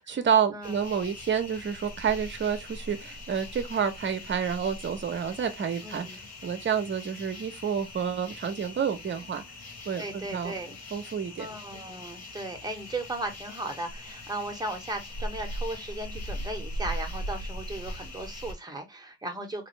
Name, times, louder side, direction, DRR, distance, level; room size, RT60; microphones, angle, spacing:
voice 1, 0.1-9.4 9.9-10.5 10.9-11.5, right 7 dB, 40° right, 0.9 m, -29 dB
sound 1, 0.6-18.5, equal, 60° left, 1.2 m, -40 dB
voice 2, 5.8-6.2 9.9-10.8 11.4-19.7, right 2 dB, 15° right, 1.2 m, -36 dB
3.5 x 2.7 x 3.2 m
cardioid pair, 90°, 30 cm